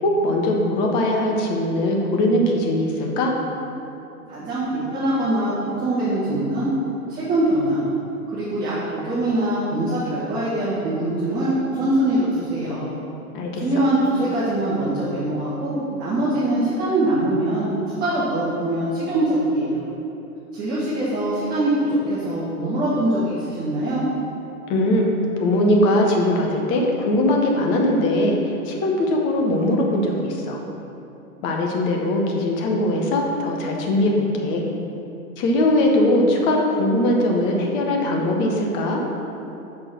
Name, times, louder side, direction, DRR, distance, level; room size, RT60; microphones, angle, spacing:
voice 1, 0.0-3.3 13.3-13.6 24.7-25.1 25.4-30.6 31.4-34.6 35.4-39.0, left 1 dB, 25° left, 0 dB, 0.9 m, -20 dB
voice 2, 4.3-6.7 7.1-7.8 8.3-12.8 13.5-19.8 20.5-24.0, right 1 dB, 20° right, -11 dB, 1.5 m, -23 dB
6.2 x 4.4 x 6.0 m, 2.9 s
figure-of-eight pair, 110°, 45 cm